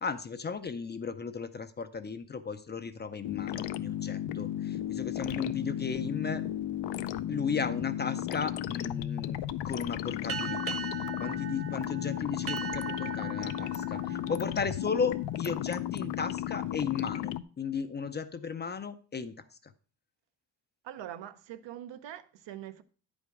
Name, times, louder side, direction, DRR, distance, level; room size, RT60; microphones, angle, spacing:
voice 1, 0.0-6.4 7.3-9.4 9.6-10.8 11.2-19.7, left 5 dB, 25° left, 0.4 m, -35 dB
sound 1, 3.2-17.4, left 12 dB, 80° left, 0.6 m, -34 dB
sound 2, 10.3-15.4, right 7 dB, 35° right, 0.6 m, -40 dB
voice 2, 20.8-22.8, right 11 dB, 80° right, 0.8 m, -43 dB
9.8 x 5.2 x 4.7 m
cardioid pair, 155°, 43 cm